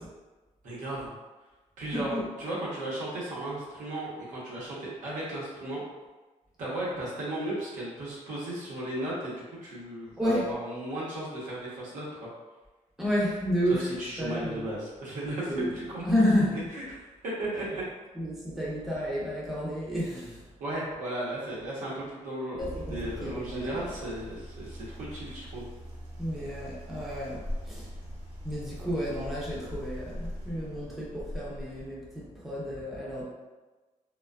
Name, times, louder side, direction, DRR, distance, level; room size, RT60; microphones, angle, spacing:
voice 1, 0.6-1.1 1.8-5.8 6.6-12.1 13.8-16.0 16.5-17.0 17.4-17.8 20.6-25.7, right 1 dB, 85° right, -7 dB, 1.0 m, -35 dB
voice 2, 10.2-10.5 13.0-13.9 14.2-14.7 15.5-15.7 16.0-16.6 18.1-20.4 22.5-23.9 26.2-27.9 28.4-33.2, equal, ahead, -7 dB, 0.6 m, -31 dB
sound 1, 22.6-31.9, equal, 55° right, 0.9 m, -41 dB
2.5 x 2.3 x 2.2 m, 1.2 s
cardioid pair, 155°, 13 cm